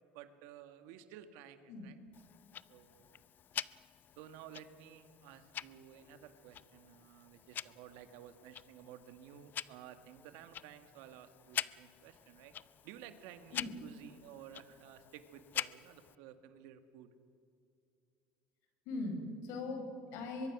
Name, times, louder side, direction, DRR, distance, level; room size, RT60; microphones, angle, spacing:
voice 1, 0.1-2.0 2.7-3.2 4.2-12.6 12.8-17.1, right 10 dB, 80° right, 9 dB, 1.7 m, -54 dB
Tick-tock, 2.1-16.1, left 10 dB, 40° left, 0.5 m, -46 dB
voice 2, 18.9-20.5, left 2 dB, 70° left, 5 dB, 5.3 m, -40 dB
23.5 x 22.5 x 6.1 m, 2.4 s
supercardioid pair, 115°, 5 cm